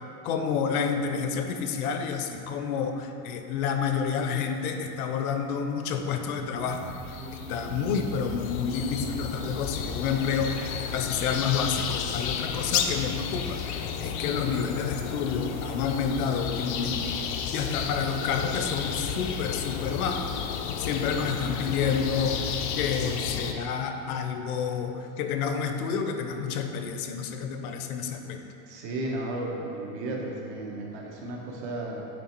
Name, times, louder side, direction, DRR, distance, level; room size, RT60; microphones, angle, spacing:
voice 1, 0.2-7.0 7.3-17.1 17.5-20.3 20.8-22.5 22.8-28.5, left 6 dB, 80° left, 6 dB, 0.8 m, -29 dB
sound 1, 6.3-12.9, right 3 dB, 30° right, 0.8 m, -43 dB
sound 2, 6.8-23.5, left 7 dB, 50° left, 0.5 m, -32 dB
voice 2, 21.7-22.1 28.7-32.0, right 2 dB, 50° right, -1 dB, 1.1 m, -34 dB
9.3 x 3.3 x 4.4 m, 2.9 s
supercardioid pair, 175°, 44 cm